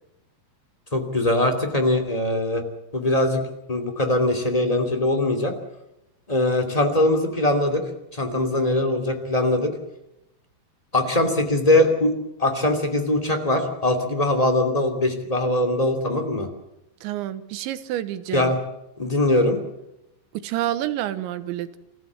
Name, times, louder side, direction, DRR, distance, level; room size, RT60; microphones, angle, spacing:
voice 1, 0.9-2.6 2.9-3.4 3.7-5.5 6.3-7.8 8.1-9.7 10.9-12.1 12.4-16.5 18.3-18.6 19.0-19.6, left 1 dB, 15° left, 5 dB, 1.6 m, -21 dB
voice 2, 17.0-18.5 20.3-21.8, right 13 dB, 85° right, 12 dB, 3.4 m, -28 dB
28.5 x 15.0 x 8.2 m, 0.89 s
omnidirectional pair, 5.2 m